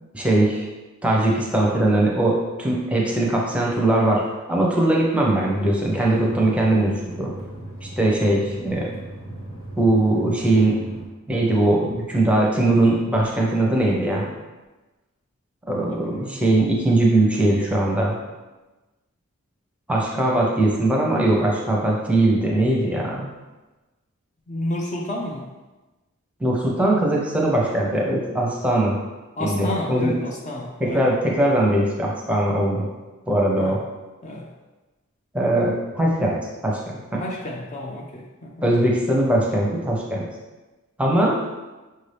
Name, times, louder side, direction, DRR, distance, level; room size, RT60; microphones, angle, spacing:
voice 1, 0.1-0.6 1.0-7.3 7.8-8.9 9.8-10.9 11.3-14.3 15.7-18.2 19.9-23.3 26.4-29.0 29.4-30.1 30.8-32.9 33.3-33.8 35.3-36.4 36.6-37.2 38.6-40.3 41.0-41.4, right 1 dB, 5° right, -3 dB, 0.7 m, -20 dB
sound 1, 5.5-11.1, right 1 dB, 75° left, 1.4 m, -37 dB
voice 2, 16.1-16.4 24.5-25.5 29.4-31.1 33.5-33.8 34.2-34.5 37.2-38.7, left 1 dB, 35° left, -1 dB, 0.4 m, -31 dB
5.9 x 2.7 x 3.3 m, 1.2 s
head